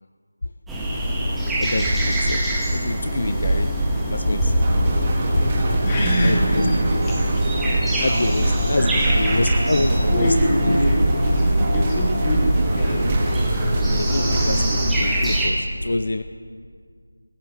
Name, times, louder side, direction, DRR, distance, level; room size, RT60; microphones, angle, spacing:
sound 1, 0.7-15.5, right 1 dB, 5° right, 1.2 m, -23 dB
voice 1, 1.6-2.4 2.7-3.7 4.1-4.5 5.4-5.6 6.2-6.4 8.0-10.3 10.6-10.8 13.9-16.2, left 2 dB, 55° left, 9 dB, 0.5 m, -26 dB
sound 2, 4.6-15.0, right 1 dB, 20° right, 1.6 m, -24 dB
voice 2, 5.8-8.1 8.9-9.7 10.1-14.6, left 1 dB, 15° left, -3 dB, 2.0 m, -26 dB
23.5 x 14.5 x 3.1 m, 2.1 s
figure-of-eight pair, 175°, 0 cm